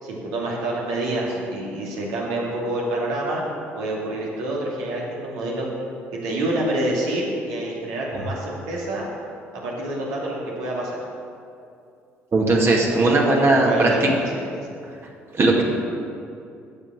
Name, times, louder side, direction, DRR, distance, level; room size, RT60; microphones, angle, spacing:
voice 1, 0.0-3.5 3.7-5.7 6.1-9.1 9.5-11.0 12.6-12.9 13.2-14.2, right 1 dB, 65° right, -4 dB, 2.5 m, -27 dB
voice 2, 12.3-14.1 15.3-15.6, right 2 dB, 35° right, -1 dB, 2.1 m, -18 dB
8.2 x 7.7 x 7.5 m, 2.5 s
figure-of-eight pair, 50°, 7 cm